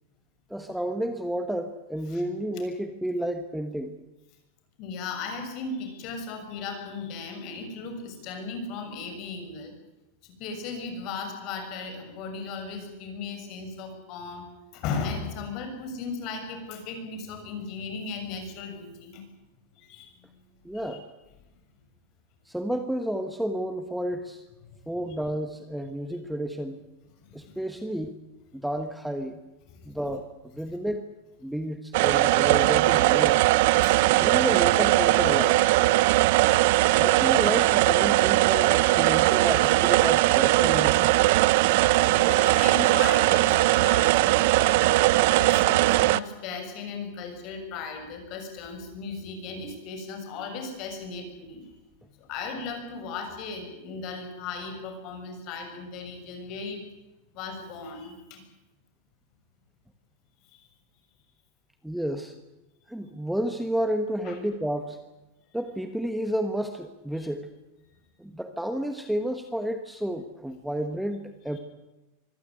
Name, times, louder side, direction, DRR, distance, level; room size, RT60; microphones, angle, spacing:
voice 1, 0.5-3.9 20.6-21.0 22.4-24.4 24.9-26.8 27.3-28.2 28.5-29.4 29.8-30.3 30.5-31.1 31.4-33.5 34.1-35.6 36.9-41.1 61.8-62.3 62.9-65.0 65.5-67.5 68.2-71.6, right 1 dB, ahead, 7 dB, 1.3 m, -31 dB
voice 2, 4.8-9.8 10.2-14.5 14.7-19.2 19.7-20.3 20.7-21.0 27.2-27.8 29.7-29.9 33.8-34.1 42.1-44.9 45.3-51.7 52.2-56.8 57.3-58.4 60.5-60.6 64.2-64.4, left 4 dB, 45° left, 6 dB, 7.0 m, -37 dB
sound 1, 31.9-46.2, right 18 dB, 60° right, 0.7 m, -20 dB
24.5 x 16.0 x 10.0 m, 1.0 s
supercardioid pair, 150°, 0 cm